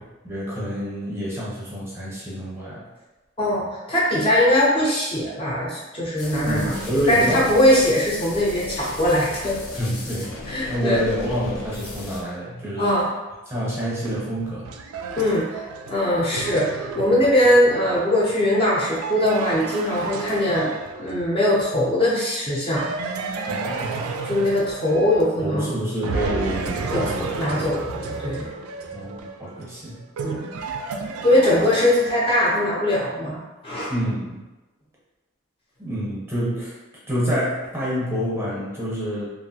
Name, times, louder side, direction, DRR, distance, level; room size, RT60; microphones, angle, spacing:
voice 1, 0.2-2.8 6.5-7.5 9.7-13.0 13.5-14.7 23.5-24.1 25.4-27.7 28.9-30.0 33.9-34.4 35.8-36.8 37.1-39.3, equal, 10° right, -7 dB, 0.7 m, -27 dB
voice 2, 3.4-6.8 7.1-9.6 10.5-11.0 12.8-13.1 15.2-20.7 21.0-22.9 24.2-25.8 26.9-27.0 27.4-28.5 30.2-30.4 31.2-33.9, left 1 dB, 25° left, -6 dB, 0.5 m, -21 dB
sound 1, 6.2-12.2, left 1 dB, 80° left, 0.7 m, -36 dB
sound 2, 14.0-21.4 22.8-25.6 26.0-32.5, right 4 dB, 85° right, 0.3 m, -32 dB
3.0 x 2.4 x 2.7 m, 1.1 s
head